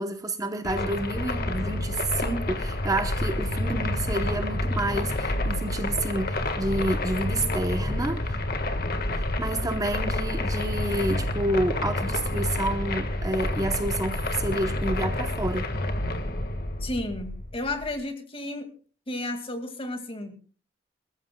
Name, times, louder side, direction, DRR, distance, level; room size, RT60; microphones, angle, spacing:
voice 1, 0.0-8.4 9.2-15.7, right 1 dB, 20° right, 0.9 m, -29 dB
sound 1, 0.6-18.0, left 1 dB, 55° left, 1.6 m, -29 dB
voice 2, 16.8-18.7 19.1-20.3, left 2 dB, 30° left, 2.1 m, -32 dB
26.5 x 14.0 x 2.3 m
head